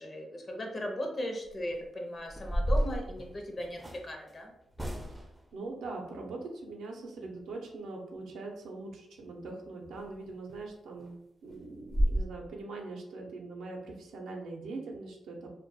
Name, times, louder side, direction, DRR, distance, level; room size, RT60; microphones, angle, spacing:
voice 1, 0.0-4.5, equal, 40° left, 2 dB, 0.6 m, -37 dB
sound 1, 1.4-1.7 2.3-4.1 4.7-5.4 9.9-10.1 10.5-10.6 11.0-11.1 11.5-11.6 11.9-12.2, equal, 10° right, 0.4 m, -31 dB
voice 2, 5.5-11.1 11.4-15.5, right 3 dB, 85° right, 1 dB, 0.5 m, -42 dB
2.2 x 2.1 x 2.6 m, 0.83 s
cardioid pair, 60°, 0 cm